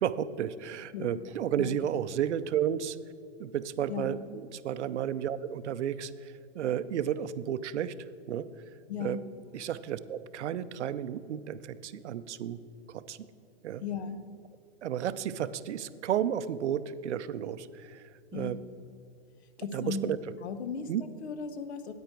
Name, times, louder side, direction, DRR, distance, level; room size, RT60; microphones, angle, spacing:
voice 1, 0.0-3.0 3.4-7.9 8.3-8.5 9.0-9.2 9.5-12.6 12.9-13.2 13.6-13.8 14.8-18.6 19.7-20.2 20.9-21.0, right 9 dB, 80° right, 14 dB, 0.6 m, -32 dB
voice 2, 8.9-9.2 13.8-14.2 18.3-18.6 19.6-20.0 20.4-21.9, left 6 dB, 70° left, 11 dB, 1.0 m, -36 dB
9.4 x 9.0 x 4.5 m, 2.5 s
hypercardioid pair, 170°, 34 cm